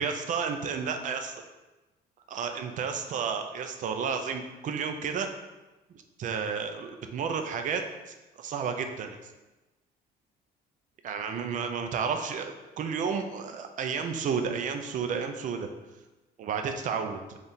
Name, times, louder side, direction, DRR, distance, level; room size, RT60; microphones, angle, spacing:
voice 1, 0.0-1.3 2.3-5.3 6.2-9.3 11.0-15.7 16.4-17.4, right 6 dB, 50° right, 6 dB, 0.5 m, -32 dB
3.5 x 2.4 x 4.2 m, 1.1 s
cardioid pair, 110°, 17 cm